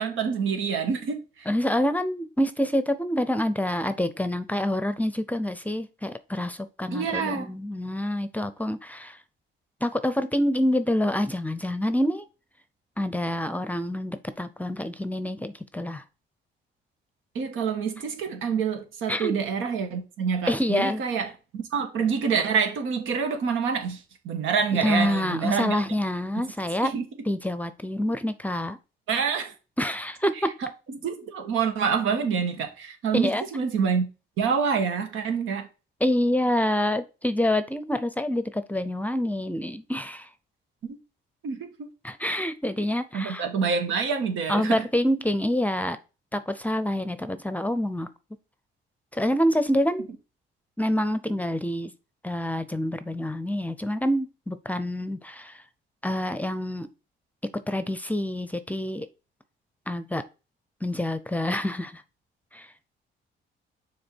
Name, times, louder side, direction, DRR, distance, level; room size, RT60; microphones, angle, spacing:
voice 1, 0.0-1.5 6.9-7.5 17.3-25.8 26.8-27.0 29.1-29.5 30.3-34.0 34.4-35.7 40.8-41.0 41.4-41.9 43.1-44.9, right 6 dB, 85° right, 1.4 m, -27 dB
voice 2, 1.5-9.2 9.8-12.2 13.0-16.0 19.1-19.3 20.5-21.0 24.8-26.9 27.3-28.8 29.8-30.5 33.1-33.4 36.0-40.3 42.0-43.4 44.5-46.0 46.3-48.1 49.1-50.1 50.8-51.9 52.2-55.6 56.0-56.9 57.7-59.1 59.9-60.2 60.8-62.0 62.5-62.7, left 1 dB, 10° left, 0.6 m, -27 dB
6.5 x 3.7 x 4.5 m
cardioid pair, 90°, 20 cm